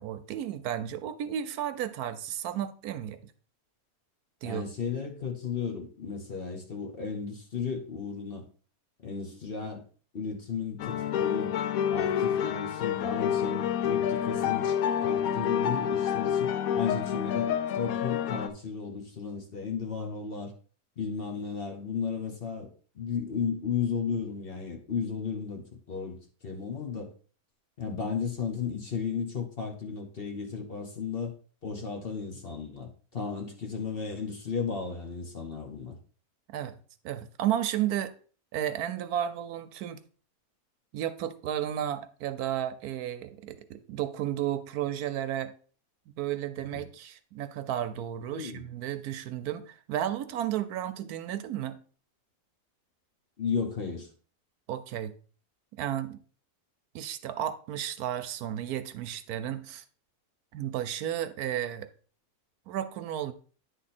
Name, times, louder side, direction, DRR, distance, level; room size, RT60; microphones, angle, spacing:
voice 1, 0.0-3.3 4.4-4.6 36.5-36.8 37.0-38.1 38.5-40.0 40.9-45.5 46.1-51.8 54.7-55.1 55.7-56.2 56.9-59.8 60.5-61.9 62.7-63.3, right 11 dB, 80° right, 11 dB, 1.1 m, -33 dB
voice 2, 4.4-8.4 9.0-9.8 10.1-11.6 11.9-20.5 21.0-22.7 22.9-26.2 26.4-27.1 27.8-31.3 31.6-36.0 46.7-46.9 48.3-48.7 53.4-54.1, left 6 dB, 40° left, 2 dB, 1.1 m, -34 dB
sound 1, 10.8-18.5, left 9 dB, 70° left, 1.0 m, -28 dB
9.6 x 3.7 x 4.2 m, 0.41 s
omnidirectional pair, 1.6 m